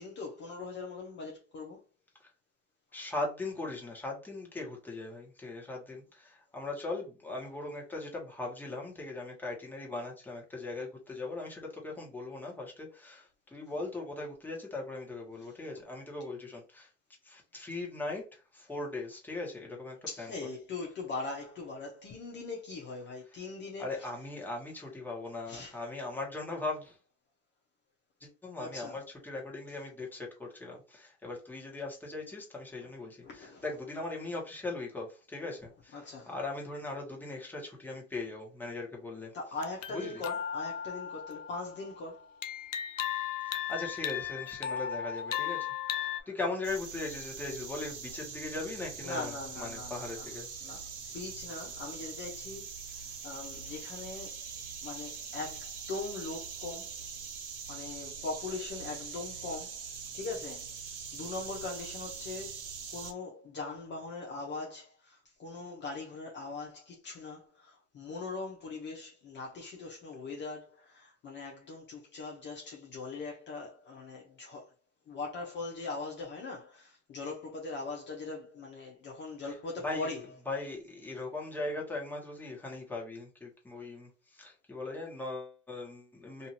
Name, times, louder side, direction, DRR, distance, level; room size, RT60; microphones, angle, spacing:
voice 1, 0.0-1.8 15.4-15.5 20.0-24.1 25.5-25.8 28.6-29.0 32.8-32.9 33.2-33.6 35.9-36.3 39.3-42.3 46.1-46.3 49.0-50.3 50.6-50.9 51.1-54.5 54.8-57.0 57.7-59.9 60.1-60.7 61.1-62.6 62.9-74.7 75.1-80.2, left 3 dB, 30° left, 0.8 m, -41 dB
voice 2, 2.9-16.9 17.2-20.3 23.8-27.0 28.2-36.0 36.3-39.3 39.9-40.2 43.4-50.5 79.8-80.1 80.5-86.5, left 2 dB, 5° left, 1.1 m, -39 dB
sound 1, 39.6-41.9 42.4-46.2, left 9 dB, 85° left, 0.6 m, -36 dB
sound 2, 46.6-63.1, right 6 dB, 40° right, 0.9 m, -43 dB
2.7 x 2.5 x 2.8 m
hypercardioid pair, 105°, 38 cm